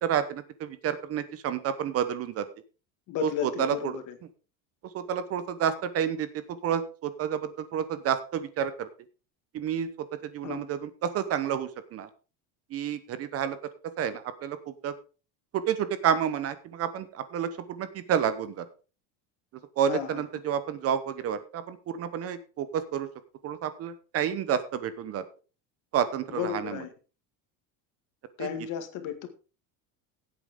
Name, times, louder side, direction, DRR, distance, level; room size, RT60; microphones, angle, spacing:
voice 1, 0.0-2.4 3.2-3.3 3.6-3.7 4.9-6.3 6.6-7.4 7.7-8.9 9.5-9.9 10.3-12.1 12.7-13.6 14.0-14.1 14.4-14.9 15.5-18.6 19.8-23.1 23.4-25.2 25.9-26.7 28.4-28.5, right 8 dB, 35° right, 13 dB, 0.9 m, -29 dB
voice 2, 3.1-4.2 10.4-10.7 19.9-20.2 26.3-26.9 28.4-29.3, left 9 dB, 50° left, 8 dB, 2.0 m, -33 dB
16.0 x 8.6 x 3.7 m, 0.34 s
cardioid pair, 165°, 40 cm